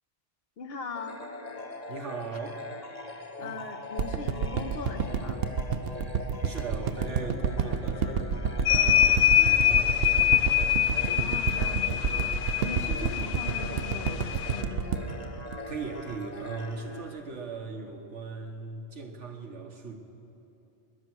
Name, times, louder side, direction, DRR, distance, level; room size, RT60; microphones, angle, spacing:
voice 1, 0.6-1.2 3.4-5.4 11.2-15.1, left 4 dB, 60° left, 6 dB, 1.2 m, -40 dB
sound 1, 1.0-17.7, left 2 dB, 35° left, 1.2 m, -42 dB
voice 2, 1.9-2.7 3.4-3.6 6.4-10.8 15.7-19.9, right 4 dB, 85° right, 3 dB, 1.6 m, -39 dB
sound 2, 4.0-16.3 16.7-16.8, right 6 dB, 60° right, 0.9 m, -29 dB
sound 3, 8.6-14.6, left 11 dB, 90° left, 0.9 m, -25 dB
21.0 x 10.5 x 6.2 m, 2.8 s
omnidirectional pair, 1.2 m